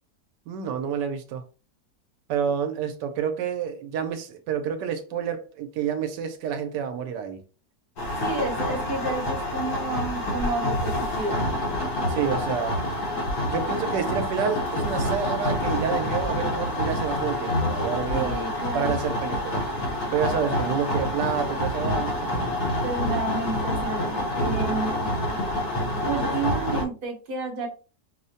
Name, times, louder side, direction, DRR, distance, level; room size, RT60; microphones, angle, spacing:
voice 1, 0.5-1.4 2.3-7.4 12.1-12.8 13.5-18.4 18.7-19.7 20.1-22.5, right 7 dB, 85° right, 1.2 m, -29 dB
sound 1, 8.0-26.8, left 1 dB, 65° left, 1.4 m, -27 dB
voice 2, 8.2-11.5 18.1-19.2 22.8-25.0 26.0-27.7, right 3 dB, 40° right, 1.0 m, -31 dB
5.0 x 2.1 x 2.7 m
omnidirectional pair, 1.8 m